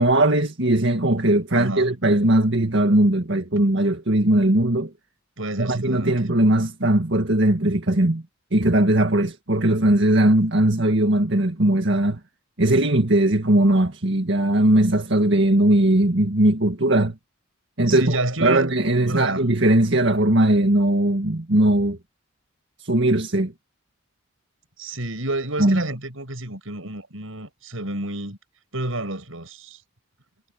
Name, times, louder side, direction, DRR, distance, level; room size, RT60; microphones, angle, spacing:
voice 1, 0.0-4.9 5.6-8.2 8.5-12.2 12.6-17.1 17.8-22.0 22.8-23.5 25.6-25.8, right 1 dB, 60° right, 1.9 m, -19 dB
voice 2, 1.5-2.0 5.4-6.1 17.9-19.4 24.8-28.4 28.7-29.8, right 2 dB, 80° right, 6.7 m, -29 dB
head